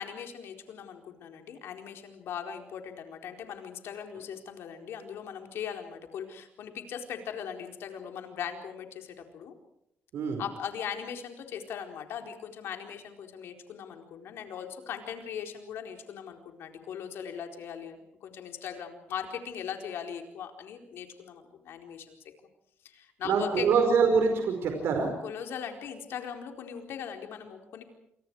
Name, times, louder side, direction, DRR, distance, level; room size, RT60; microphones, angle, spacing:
voice 1, 0.0-9.5 10.4-22.2 22.8-23.7 25.2-27.8, left 8 dB, 80° left, 4 dB, 4.3 m, -39 dB
voice 2, 23.2-25.1, right 5 dB, 80° right, 4 dB, 5.1 m, -24 dB
28.5 x 27.5 x 4.8 m, 0.76 s
cardioid pair, 125°, 4 cm